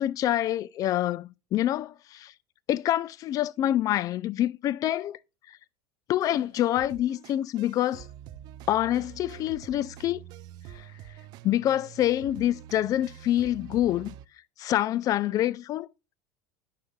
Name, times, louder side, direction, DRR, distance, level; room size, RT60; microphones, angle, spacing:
voice 1, 0.0-2.3 2.7-5.2 6.1-8.0 8.7-10.2 10.7-10.8 11.4-14.1 14.6-15.9, left 13 dB, 40° left, 0.3 m, -26 dB
sound 1, 6.2-14.3, right 11 dB, 50° right, 0.5 m, -46 dB
9.6 x 5.9 x 2.3 m
hypercardioid pair, 80°, 9 cm